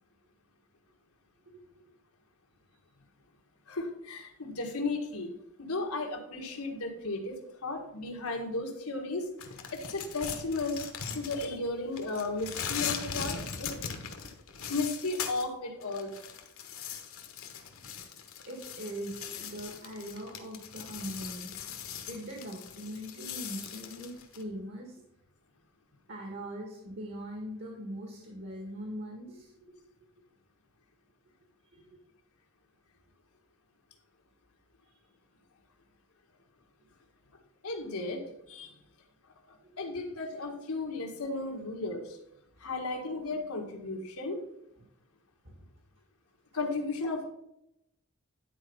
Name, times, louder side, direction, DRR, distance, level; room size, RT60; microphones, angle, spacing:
voice 1, 3.7-5.3 5.6-9.3 9.7-10.9 11.1-13.7 14.7-16.1 37.6-38.8 39.5-42.2 42.6-44.4 46.5-47.3, left 3 dB, 90° left, 2 dB, 1.7 m, -35 dB
sound 1, 9.4-11.7 12.0-15.5 15.8-24.4, left 7 dB, 65° left, 1.2 m, -40 dB
voice 2, 18.4-21.5 22.1-25.0 26.1-29.9 31.7-32.0 39.6-39.8 40.0-40.2 45.4-45.7, equal, 55° right, 0 dB, 1.7 m, -41 dB
10.5 x 4.5 x 5.4 m, 0.81 s
head